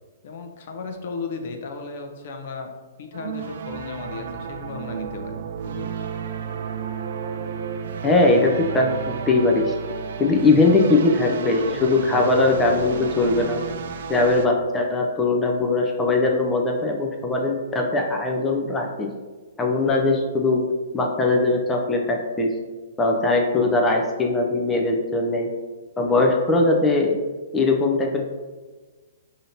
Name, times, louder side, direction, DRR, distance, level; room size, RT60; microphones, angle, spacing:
voice 1, 0.2-2.7 3.0-5.3 5.7-6.1, left 4 dB, 55° left, 4 dB, 0.6 m, -35 dB
sound 1, 3.1-14.5, right 6 dB, 65° right, 0.3 m, -32 dB
voice 2, 8.0-8.9 9.3-9.7 10.2-13.6 14.1-19.1 19.6-20.6 20.9-22.5 23.0-25.5 26.0-27.2 27.5-28.3, left 2 dB, 15° left, 1 dB, 0.4 m, -20 dB
4.9 x 2.7 x 2.7 m, 1.3 s
hypercardioid pair, 125°, 0 cm